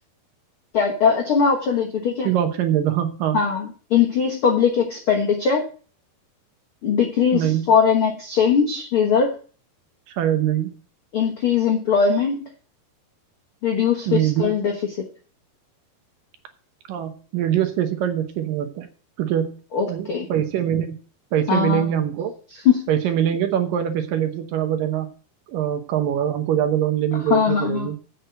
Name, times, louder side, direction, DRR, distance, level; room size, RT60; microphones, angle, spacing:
voice 1, 0.7-2.3 3.3-5.6 6.8-9.3 11.1-12.5 13.6-14.8 19.7-20.3 21.5-21.9 22.6-22.9 27.3-27.9, left 6 dB, 65° left, 1 dB, 1.3 m, -20 dB
voice 2, 2.2-3.4 7.3-7.7 10.1-10.7 14.1-14.5 16.9-18.9 19.2-19.5 19.9-21.0 21.3-22.3 22.9-25.1 25.5-28.0, right 10 dB, 70° right, 7 dB, 2.4 m, -23 dB
8.4 x 6.4 x 7.9 m, 0.39 s
omnidirectional pair, 4.6 m